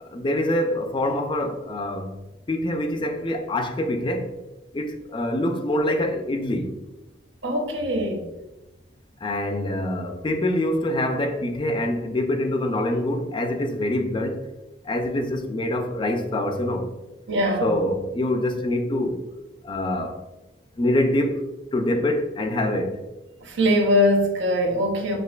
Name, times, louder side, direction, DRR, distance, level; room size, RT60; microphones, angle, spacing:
voice 1, 0.1-2.2 2.5-4.3 4.7-6.8 9.2-14.5 14.8-16.9 17.6-19.2 19.6-20.2 20.8-23.0, left 1 dB, 25° left, 0.4 m, -25 dB
voice 2, 7.4-8.3 17.3-17.7 23.4-25.2, left 1 dB, 80° right, 0.7 m, -22 dB
6.3 x 2.5 x 2.3 m
head